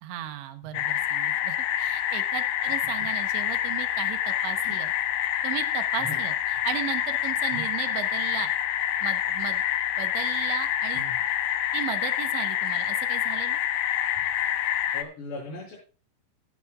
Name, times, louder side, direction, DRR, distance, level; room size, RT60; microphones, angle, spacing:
voice 1, 0.0-4.9 5.4-8.5 9.0-9.6 10.0-11.0 11.7-13.6, right 12 dB, 80° right, 9 dB, 3.3 m, -36 dB
sound 1, 0.7-15.0, left 11 dB, 85° left, 2.1 m, -27 dB
voice 2, 14.9-15.7, left 1 dB, 65° left, -7 dB, 8.3 m, -38 dB
18.5 x 10.0 x 2.4 m, 0.34 s
omnidirectional pair, 5.3 m